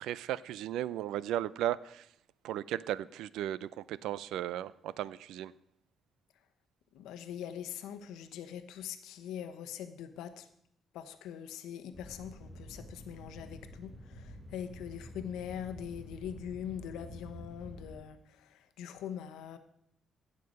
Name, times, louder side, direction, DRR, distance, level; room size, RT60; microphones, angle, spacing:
voice 1, 0.0-2.1 2.4-5.5, right 12 dB, 90° right, 20 dB, 0.4 m, -35 dB
voice 2, 6.9-10.5 10.9-19.6, left 9 dB, 90° left, 9 dB, 1.0 m, -42 dB
sound 1, 11.9-18.0, equal, 25° right, 5.5 m, -49 dB
16.0 x 6.6 x 5.3 m, 0.74 s
cardioid pair, 90°, 0 cm